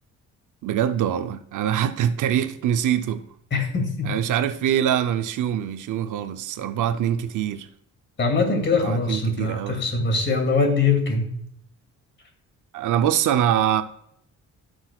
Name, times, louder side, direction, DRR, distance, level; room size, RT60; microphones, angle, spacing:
voice 1, 0.6-3.2 4.0-7.7 8.7-9.8 12.7-13.8, right 10 dB, 75° right, 0.6 m, -24 dB
voice 2, 3.5-4.2 8.2-11.3, left 4 dB, 40° left, 2.4 m, -22 dB
15.5 x 6.3 x 2.3 m
cardioid pair, 115°, 31 cm